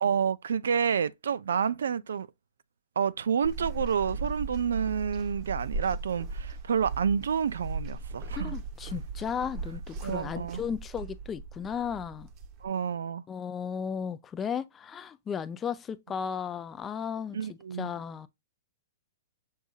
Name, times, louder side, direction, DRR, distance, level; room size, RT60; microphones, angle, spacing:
voice 1, 0.0-2.3 3.0-8.5 10.0-10.6 12.6-13.2 17.3-17.9, right 7 dB, 85° right, 0.3 m, -29 dB
sound 1, 3.4-12.7, right 3 dB, 35° right, 0.7 m, -38 dB
voice 2, 8.3-12.3 13.3-18.3, left 7 dB, 20° left, 0.4 m, -35 dB
6.4 x 2.7 x 2.3 m
hypercardioid pair, 135°, 0 cm